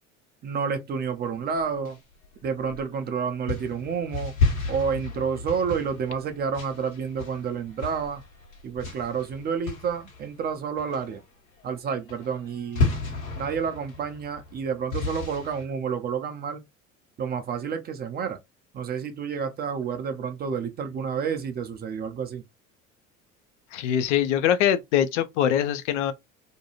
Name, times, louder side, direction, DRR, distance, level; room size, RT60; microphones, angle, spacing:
voice 1, 0.4-2.0 2.4-4.3 4.7-8.2 8.6-11.2 11.6-12.9 13.3-16.6 17.2-18.4 18.7-22.4, right 6 dB, 25° right, 0.4 m, -29 dB
sound 1, 1.4-3.0 3.5-10.5 10.8-11.2 11.6-11.8 12.1-15.6, left 3 dB, 80° left, 1.2 m, -32 dB
voice 2, 23.7-26.1, left 10 dB, 60° left, 0.5 m, -23 dB
2.6 x 2.2 x 2.8 m
figure-of-eight pair, 65°, 40 cm